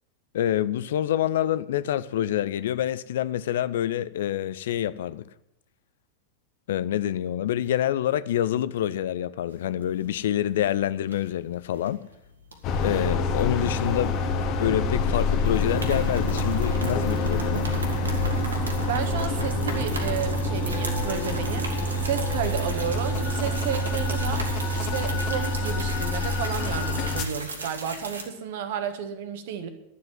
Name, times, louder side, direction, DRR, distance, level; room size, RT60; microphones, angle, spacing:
voice 1, 0.3-5.2 6.7-12.1 12.8-14.2 14.6-17.7, left 11 dB, 60° left, 0.5 m, -27 dB
sound 1, 9.6-10.2 10.5-10.7 11.1-11.9 12.5-14.4 14.7-14.8 15.1-28.2, right 2 dB, 75° right, 1.8 m, -37 dB
sound 2, 12.6-27.2, left 2 dB, 40° left, 1.2 m, -26 dB
voice 2, 18.9-21.7 22.0-24.5 24.7-29.7, right 8 dB, 55° right, 1.4 m, -32 dB
11.0 x 7.7 x 9.4 m
figure-of-eight pair, 90°, 0 cm